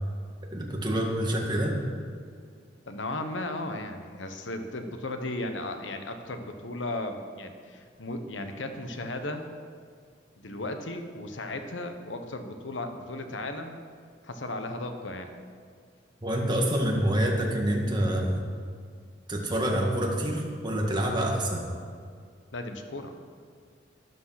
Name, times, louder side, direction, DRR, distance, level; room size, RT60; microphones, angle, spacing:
voice 1, 0.5-1.8 16.2-18.4 19.3-21.7, right 1 dB, 25° right, -1 dB, 1.9 m, -27 dB
voice 2, 2.9-9.5 10.4-13.8 14.2-15.3 22.5-23.2, left 2 dB, 80° left, 7 dB, 1.2 m, -35 dB
12.0 x 10.5 x 5.9 m, 2.1 s
head